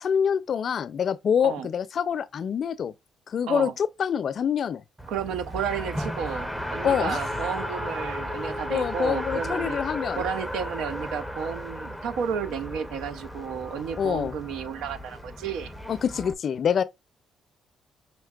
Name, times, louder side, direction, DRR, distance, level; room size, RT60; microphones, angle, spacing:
voice 1, 0.0-2.9 3.3-4.8 6.8-7.2 8.7-10.2 14.0-14.3 15.9-16.8, left 7 dB, 55° left, 0.4 m, -26 dB
Race car auto racing, 5.0-16.3, equal, 5° right, 0.6 m, -34 dB
voice 2, 5.1-9.8 10.1-15.7, right 7 dB, 90° right, 0.4 m, -32 dB
5.8 x 3.1 x 2.3 m
cardioid pair, 90°, 0 cm